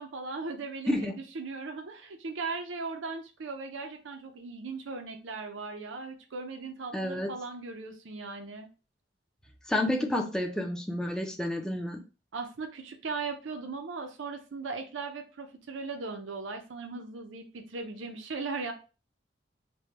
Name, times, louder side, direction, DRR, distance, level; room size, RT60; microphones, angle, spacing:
voice 1, 0.0-8.7 12.3-18.7, right 4 dB, 75° right, 4 dB, 0.6 m, -38 dB
voice 2, 6.9-7.3 9.7-12.0, left 1 dB, 5° left, 2 dB, 0.4 m, -30 dB
3.4 x 2.2 x 4.0 m, 0.33 s
head